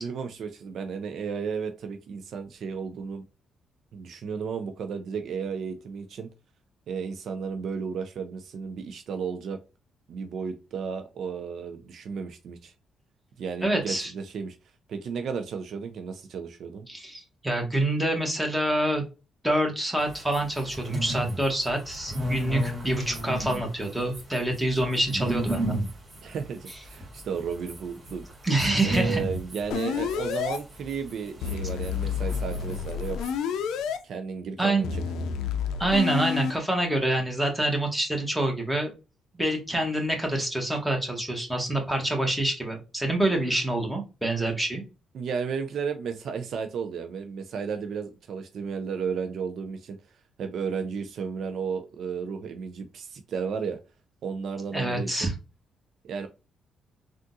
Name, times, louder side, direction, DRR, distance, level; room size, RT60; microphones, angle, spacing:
voice 1, 0.0-3.2 3.9-6.3 6.9-9.6 10.1-12.7 13.4-14.6 14.9-16.9 26.2-28.2 28.8-33.2 34.0-35.0 45.1-50.0 50.4-53.8 54.2-55.3 56.0-56.3, right 6 dB, 65° right, 0.4 m, -33 dB
voice 2, 13.6-14.1 16.9-19.0 19.4-25.8 28.4-29.2 34.6-34.9 35.8-38.9 39.3-44.8 54.7-55.3, right 1 dB, 5° right, 1.3 m, -26 dB
sound 1, 20.0-33.3, right 1 dB, 40° right, 1.7 m, -34 dB
sound 2, 29.7-30.6 31.4-34.0 34.8-36.5, left 7 dB, 85° left, 0.4 m, -29 dB
3.6 x 2.4 x 2.6 m
cardioid pair, 90°, 0 cm